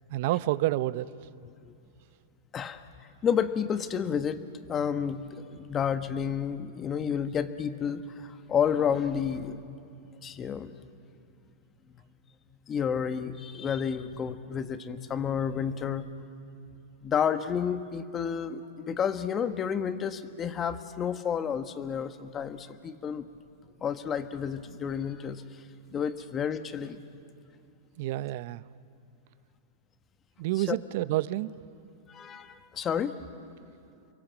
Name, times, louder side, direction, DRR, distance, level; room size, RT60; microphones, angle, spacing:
voice 1, 0.1-1.1 28.0-28.6 30.4-31.6, right 16 dB, 60° right, 17 dB, 0.7 m, -29 dB
voice 2, 2.5-2.8 3.2-9.6 10.2-10.8 11.9-12.0 12.7-16.1 17.0-23.3 23.8-25.4 25.9-27.0 30.6-30.8 32.1-33.2, left 7 dB, 30° left, 9 dB, 1.5 m, -30 dB
29.5 x 23.5 x 7.6 m, 2.6 s
hypercardioid pair, 110°, 0 cm